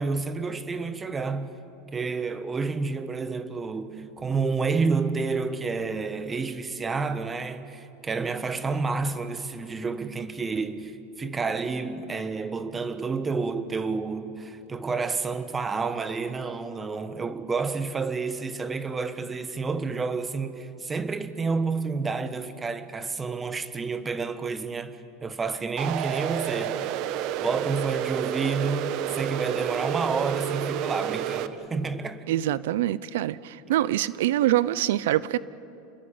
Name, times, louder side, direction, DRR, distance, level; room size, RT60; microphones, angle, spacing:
voice 1, 0.0-1.5 1.9-26.9 27.4-32.2, right 4 dB, 15° right, 1.3 m, -29 dB
sound 1, 25.8-31.5, right 11 dB, 50° right, 1.2 m, -30 dB
voice 2, 32.3-35.4, right 13 dB, 80° right, 0.7 m, -25 dB
28.0 x 21.5 x 8.7 m
supercardioid pair, 145°, 0 cm